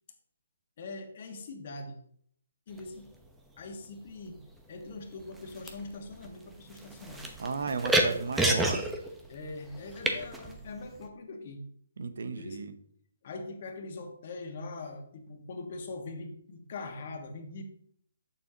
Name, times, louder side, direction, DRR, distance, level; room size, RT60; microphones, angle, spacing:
voice 1, 0.8-2.0 2.7-3.1 3.6-4.4 4.7-7.2 9.3-11.6 12.4-12.7 13.2-17.6, left 3 dB, 50° left, 4 dB, 1.6 m, -42 dB
sound 1, 2.8-3.2 4.1-4.6 4.9-11.1, right 1 dB, 5° right, 0.9 m, -31 dB
voice 2, 7.4-8.9 12.0-12.7, right 4 dB, 70° right, 10 dB, 0.8 m, -34 dB
8.6 x 7.0 x 2.9 m, 0.64 s
hypercardioid pair, 145°, 0 cm